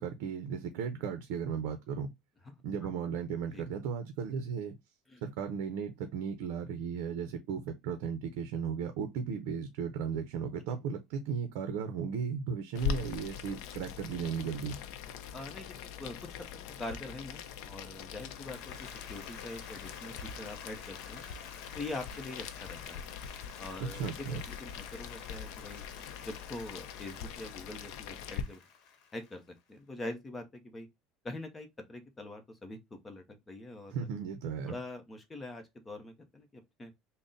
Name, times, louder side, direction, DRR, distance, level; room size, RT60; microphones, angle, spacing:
voice 1, 0.0-2.1 2.6-4.8 5.2-14.7 23.8-24.4 33.9-34.7, right 6 dB, 70° right, 0.6 m, -35 dB
Boiling, 12.7-28.4, left 8 dB, 65° left, 0.5 m, -42 dB
voice 2, 15.3-15.7 16.0-16.3 16.8-21.2 21.7-23.1 23.6-25.8 26.2-28.6 29.1-30.9 31.2-34.1 34.7-36.9, left 2 dB, 15° left, 0.6 m, -44 dB
Applause, 18.2-29.6, left 6 dB, 50° left, 0.9 m, -51 dB
3.8 x 2.0 x 3.8 m
cardioid pair, 160°, 0 cm